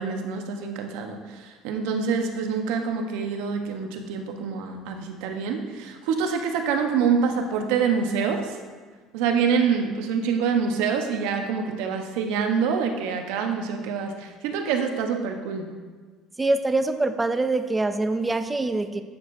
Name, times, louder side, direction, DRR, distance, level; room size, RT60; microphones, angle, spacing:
voice 1, 0.0-8.6 9.1-15.7, right 6 dB, 85° right, 4 dB, 0.9 m, -26 dB
voice 2, 16.4-19.0, right 2 dB, 10° right, 9 dB, 0.3 m, -24 dB
10.5 x 7.2 x 2.6 m, 1.4 s
cardioid pair, 175°, 0 cm